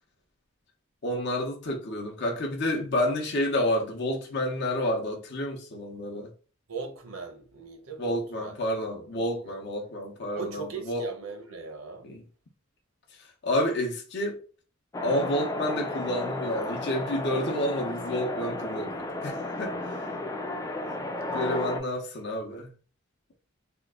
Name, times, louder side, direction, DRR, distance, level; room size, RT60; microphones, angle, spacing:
voice 1, 1.0-6.3 8.0-11.1 12.0-12.2 13.1-14.4 15.0-20.0 21.3-22.7, left 1 dB, 50° left, 0.7 m, -30 dB
voice 2, 6.7-8.5 9.1-9.6 10.3-12.1 19.7-19.8 21.3-21.4, right 5 dB, 80° right, 0.9 m, -39 dB
sound 1, 14.9-21.8, left 2 dB, 15° left, 0.3 m, -33 dB
2.9 x 2.4 x 3.6 m
head